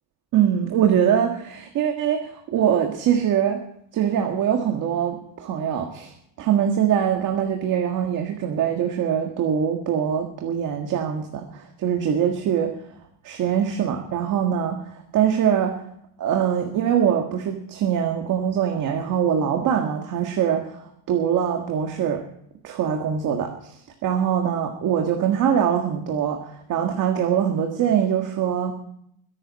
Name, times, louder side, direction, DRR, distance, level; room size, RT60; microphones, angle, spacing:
voice 1, 0.3-3.6 3.9-6.1 6.4-12.7 13.2-14.8 15.1-15.8 16.2-22.2 22.6-28.7, right 9 dB, 40° right, 3 dB, 1.7 m, -23 dB
21.5 x 12.0 x 4.2 m, 0.70 s
cardioid pair, 175°, 46 cm